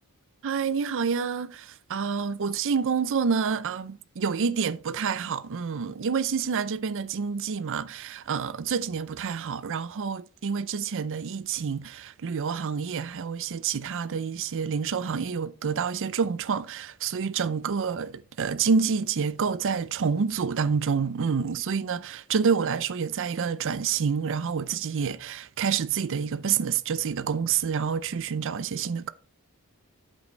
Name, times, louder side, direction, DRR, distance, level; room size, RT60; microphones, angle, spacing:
voice 1, 0.4-29.1, right 6 dB, 60° right, 0.5 m, -28 dB
8.2 x 7.6 x 3.2 m
head